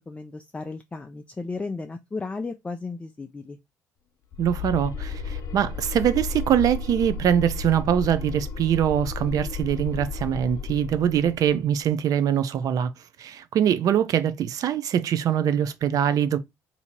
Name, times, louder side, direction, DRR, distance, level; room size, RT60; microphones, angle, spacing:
voice 1, 0.1-3.6, left 3 dB, 15° left, 0.4 m, -34 dB
sound 1, 4.3-11.5, left 4 dB, 60° left, 0.8 m, -33 dB
voice 2, 4.4-12.9 13.2-16.4, right 9 dB, 60° right, 0.5 m, -23 dB
2.8 x 2.7 x 4.3 m
supercardioid pair, 80°, 7 cm